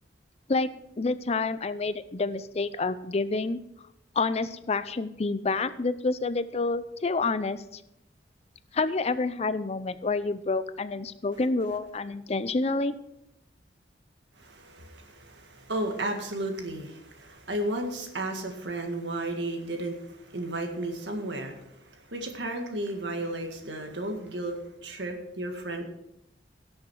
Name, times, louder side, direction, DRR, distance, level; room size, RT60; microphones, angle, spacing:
voice 1, 1.0-3.6 4.2-7.8 8.7-12.9, left 3 dB, 35° left, 14 dB, 0.5 m, -28 dB
voice 2, 14.4-25.8, right 1 dB, 85° right, 4 dB, 1.9 m, -34 dB
17.0 x 6.5 x 4.6 m, 0.83 s
head